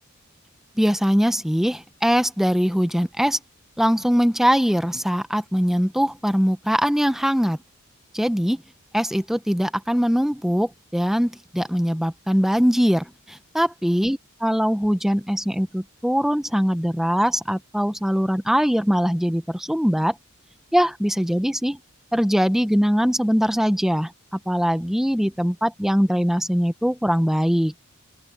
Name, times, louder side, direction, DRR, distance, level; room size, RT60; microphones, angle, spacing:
voice 1, 0.8-3.4 3.8-7.6 8.1-8.6 8.9-20.1 20.7-21.8 22.1-24.1 24.5-27.7, equal, ahead, 0.7 m, -21 dB
open air
head